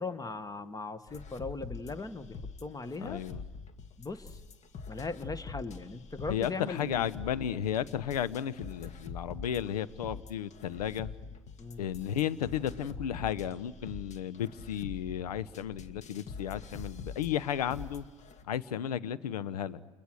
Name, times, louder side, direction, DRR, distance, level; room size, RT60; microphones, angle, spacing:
voice 1, 0.0-3.2 4.0-4.4 4.9-7.1 11.6-11.8, left 3 dB, 20° left, 13 dB, 1.6 m, -39 dB
sound 1, 1.1-18.4, left 4 dB, 35° left, 2.0 m, -45 dB
voice 2, 3.0-3.4 6.3-11.1 11.8-18.0 18.4-19.8, left 10 dB, 75° left, 17 dB, 1.1 m, -33 dB
30.0 x 28.5 x 6.5 m, 1.3 s
hypercardioid pair, 80°, 20 cm